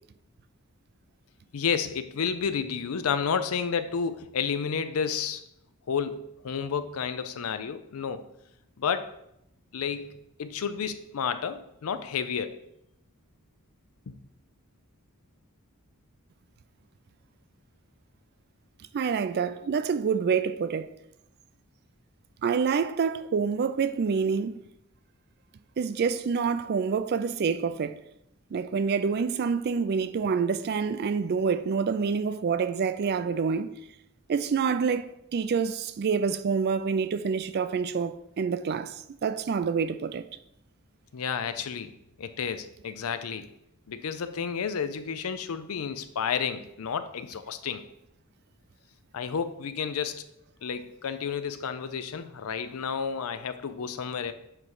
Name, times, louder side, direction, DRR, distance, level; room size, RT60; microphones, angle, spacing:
voice 1, 1.5-5.4 5.9-8.2 8.8-9.1 9.7-12.6 14.1-14.2 41.1-41.9 42.2-43.5 43.9-47.9 49.1-50.2 50.6-54.3, left 6 dB, 75° left, 0.5 m, -31 dB
voice 2, 18.9-20.9 22.4-24.6 25.8-28.0 28.5-33.7 34.3-40.3, right 5 dB, 45° right, 0.3 m, -27 dB
7.7 x 3.2 x 4.6 m
head